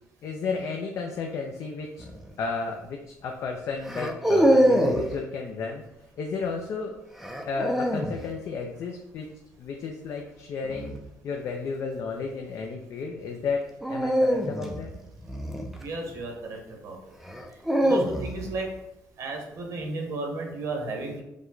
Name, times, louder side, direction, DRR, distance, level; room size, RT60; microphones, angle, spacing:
voice 1, 0.2-2.0 2.4-5.8 6.2-7.0 7.4-9.3 9.6-10.9 11.2-13.6 13.9-14.9, left 4 dB, 55° left, 2 dB, 0.5 m, -33 dB
sound 1, 2.0-2.3 3.8-5.1 7.2-8.2 10.6-11.0 13.8-16.2 17.2-18.5, equal, 5° right, 0.4 m, -24 dB
voice 2, 15.8-16.6 16.8-17.0 17.8-18.7 19.2-21.2, right 2 dB, 60° right, 2 dB, 1.0 m, -33 dB
4.8 x 2.2 x 3.9 m, 0.87 s
cardioid pair, 145°, 6 cm